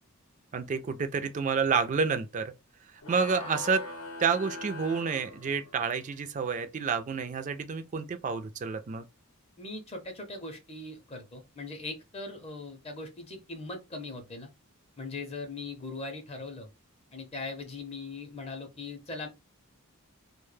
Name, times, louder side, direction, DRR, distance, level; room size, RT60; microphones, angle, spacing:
voice 1, 0.5-2.5 3.1-3.8 4.2-9.1, right 5 dB, 35° right, 0.3 m, -29 dB
sound 1, 3.0-5.9, left 3 dB, 80° left, 0.7 m, -41 dB
voice 2, 9.6-14.5 15.0-16.7 17.1-19.3, left 3 dB, 30° left, 0.5 m, -40 dB
2.1 x 2.0 x 3.1 m
head